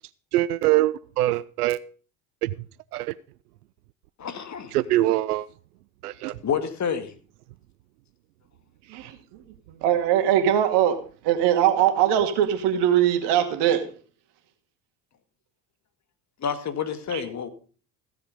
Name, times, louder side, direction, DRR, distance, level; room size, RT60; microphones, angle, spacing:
voice 1, 0.3-1.8 2.4-2.5 2.9-3.1 4.7-5.5 6.0-6.3, right 15 dB, 80° right, 0.6 m, -23 dB
voice 2, 4.2-4.8 6.4-7.1 16.4-17.5, left 7 dB, 35° left, 1.9 m, -29 dB
voice 3, 9.8-11.0 11.2-13.8 17.1-17.2, right 10 dB, 65° right, 2.3 m, -21 dB
16.0 x 7.7 x 5.3 m
hypercardioid pair, 60°, 45 cm